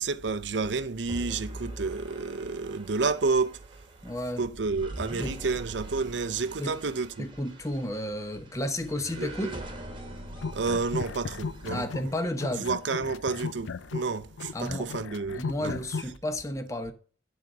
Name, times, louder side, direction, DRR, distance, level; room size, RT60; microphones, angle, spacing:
voice 1, 0.0-3.6 4.4-7.3 9.2-9.6 10.5-11.9 12.6-15.7, right 4 dB, 65° right, 0.6 m, -30 dB
sound 1, 1.1-12.4, right 1 dB, 25° right, 1.4 m, -43 dB
voice 2, 4.0-4.4 5.2-5.4 6.6-6.8 7.2-9.6 11.7-12.7 14.5-14.9 15.3-16.9, left 1 dB, 15° left, 0.9 m, -32 dB
sound 2, 10.3-12.1 12.4-16.1, left 4 dB, 80° left, 0.5 m, -36 dB
10.5 x 4.0 x 6.5 m
head